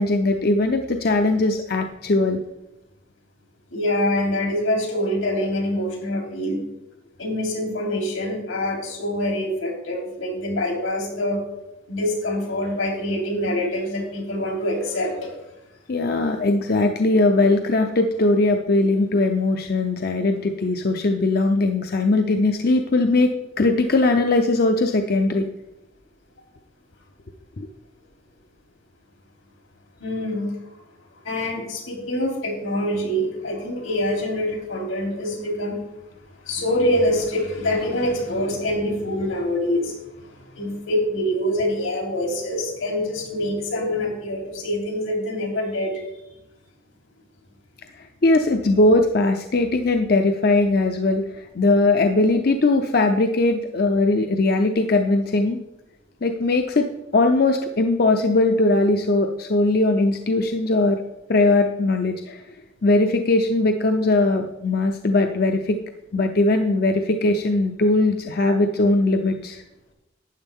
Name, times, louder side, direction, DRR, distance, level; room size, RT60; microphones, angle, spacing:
voice 1, 0.0-2.4 15.9-23.3 23.6-25.5 27.6-27.7 48.0-55.6 56.2-56.8 57.1-61.0 61.3-62.4 62.8-65.8 66.1-69.6, left 2 dB, 50° left, 5 dB, 0.6 m, -20 dB
voice 2, 3.7-6.6 7.2-11.4 11.9-15.3 30.0-30.5 31.1-35.8 36.4-46.0, left 1 dB, 90° left, 0 dB, 3.3 m, -25 dB
12.0 x 8.9 x 3.6 m, 0.92 s
head